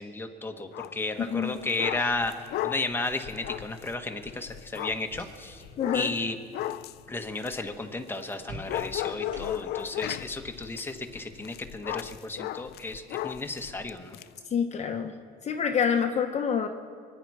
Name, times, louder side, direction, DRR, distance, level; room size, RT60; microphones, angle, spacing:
voice 1, 0.0-2.3 2.6-5.6 5.9-6.4 7.1-14.2, left 2 dB, 15° left, 5 dB, 1.2 m, -33 dB
sound 1, 0.7-1.0 1.4-8.3 8.7-14.3, left 14 dB, 70° left, 0.4 m, -36 dB
voice 2, 1.2-1.6 5.8-6.1 14.5-15.1 15.4-16.7, left 7 dB, 40° left, 5 dB, 0.9 m, -27 dB
sound 2, 4.7-5.7 6.0-6.4 8.5-9.9, equal, 55° right, 5.3 m, -46 dB
24.5 x 9.9 x 4.8 m, 2.1 s
cardioid pair, 110°, 17 cm